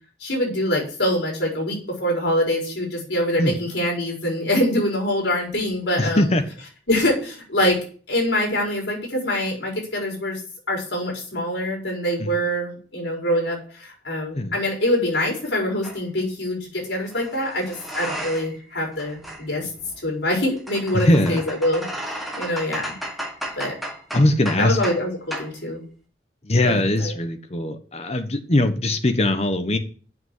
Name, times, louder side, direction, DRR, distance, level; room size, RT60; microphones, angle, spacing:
voice 1, 0.2-6.2 6.9-7.8 8.1-10.4 10.7-19.7 20.0-21.8 22.4-22.9 23.6-23.7 24.6-25.8 26.6-27.1, left 1 dB, 90° left, -1 dB, 4.6 m, -24 dB
voice 2, 6.0-6.4 12.2-12.3 14.3-14.6 20.9-21.4 24.1-24.8 26.4-29.8, left 1 dB, 35° left, 8 dB, 1.1 m, -21 dB
sound 1, 15.8-16.0 17.1-18.6 18.9-25.0 25.3-25.5, right 1 dB, ahead, 1.6 m, -34 dB
8.0 x 6.1 x 7.9 m, 0.43 s
head